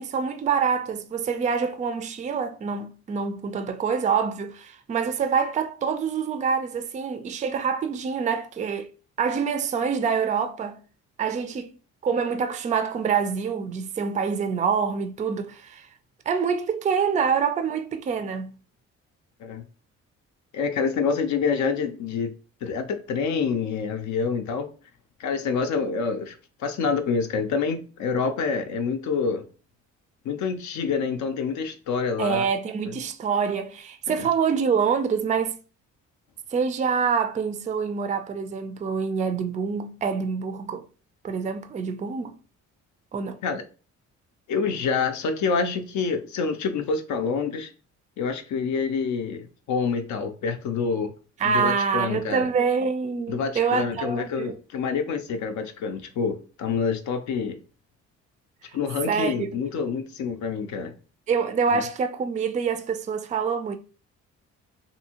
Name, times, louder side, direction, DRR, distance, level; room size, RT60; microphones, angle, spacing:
voice 1, 0.0-8.9 9.2-10.8 11.2-11.7 12.0-15.9 16.3-18.5 32.2-35.6 36.5-40.8 41.2-42.4 43.1-43.4 51.4-54.6 59.1-59.5 61.3-63.8, right 6 dB, 25° right, 0.3 m, -26 dB
voice 2, 20.5-22.3 22.6-24.7 25.2-29.4 30.2-32.4 34.1-34.3 43.4-43.6 44.5-47.7 48.2-51.1 51.4-52.5 53.3-57.6 58.7-60.9 61.7-61.8, left 5 dB, 70° left, 0.5 m, -27 dB
2.6 x 2.6 x 2.8 m
cardioid pair, 90°, 30 cm